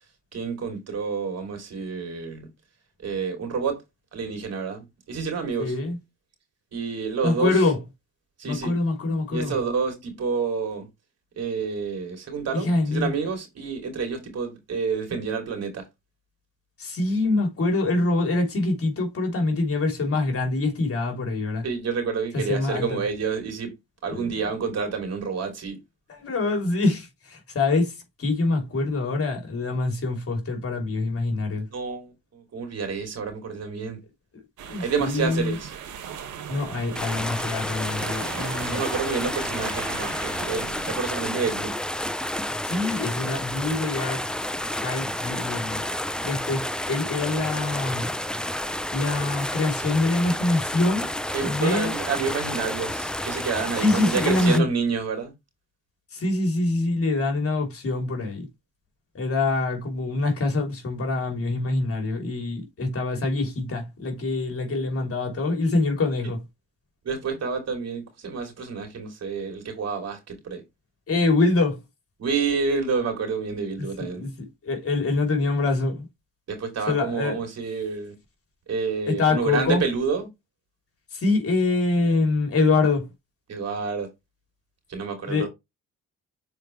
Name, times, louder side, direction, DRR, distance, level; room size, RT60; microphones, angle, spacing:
voice 1, 0.3-2.5 3.0-3.8 4.1-5.7 6.7-7.6 8.4-8.7 9.3-10.9 11.4-15.8 21.6-23.7 24.0-25.8 31.7-34.0 34.8-35.7 38.7-41.7 51.3-55.3 67.0-70.6 72.2-74.3 76.5-78.1 78.7-80.3 83.5-84.1 84.9-85.5, right 5 dB, 55° right, 3.2 m, -29 dB
voice 2, 5.6-6.0 7.2-7.8 8.5-9.5 12.5-13.1 16.8-21.6 22.3-23.0 24.1-24.4 26.1-31.7 34.7-35.6 36.5-38.8 42.6-44.2 44.7-45.8 46.2-48.1 48.9-51.1 51.4-51.9 53.8-54.7 56.1-58.5 59.1-66.4 71.1-71.8 73.8-76.1 76.9-77.4 79.1-79.8 81.1-83.1 85.2-85.5, left 3 dB, 50° left, 3.4 m, -25 dB
sound 1, 34.6-41.0, right 8 dB, 80° right, 1.8 m, -39 dB
sound 2, 37.0-54.6, left 1 dB, 5° left, 0.5 m, -30 dB
6.6 x 4.6 x 3.2 m
cardioid pair, 90°, 30 cm